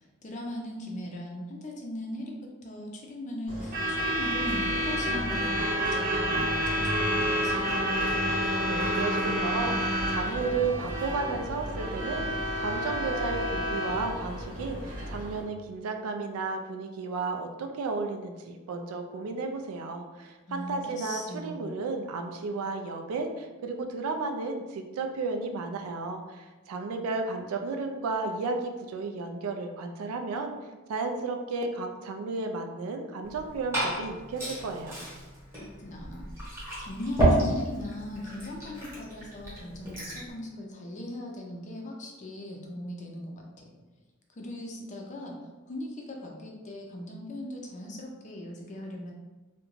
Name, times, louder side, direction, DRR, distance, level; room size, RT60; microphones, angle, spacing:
voice 1, 0.2-7.8 20.5-21.7 35.5-43.7 44.3-45.4 45.7-49.1, left 1 dB, 35° left, 0 dB, 0.4 m, -39 dB
Truck / Alarm, 3.5-15.4, equal, 40° right, 0.7 m, -29 dB
voice 2, 8.7-30.5 30.9-35.0, right 3 dB, 75° right, 5 dB, 0.3 m, -33 dB
Liquid, 33.2-40.3, right 1 dB, 10° right, 0.9 m, -31 dB
2.4 x 2.1 x 3.0 m, 1.2 s
head